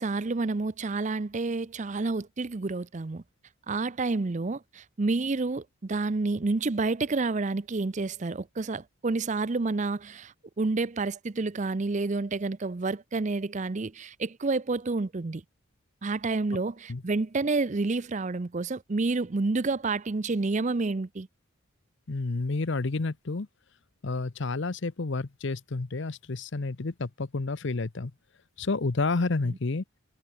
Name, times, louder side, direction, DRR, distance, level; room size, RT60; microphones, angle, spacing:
voice 1, 0.0-3.2 3.7-15.4 16.0-21.3 29.4-29.6, right 3 dB, 35° right, 0.5 m, -29 dB
voice 2, 22.1-23.5 24.0-28.1 28.6-29.8, left 3 dB, 55° left, 0.8 m, -30 dB
head